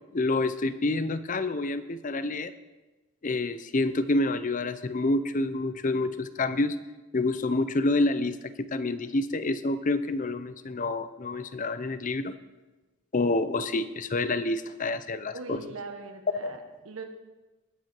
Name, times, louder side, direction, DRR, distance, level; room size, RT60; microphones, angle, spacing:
voice 1, 0.1-2.5 3.2-6.8 7.1-12.3 13.1-15.6 16.4-16.6, left 2 dB, 40° left, 13 dB, 0.6 m, -28 dB
voice 2, 15.3-17.0, right 3 dB, 90° right, 5 dB, 1.6 m, -40 dB
19.5 x 7.7 x 4.5 m, 1.1 s
head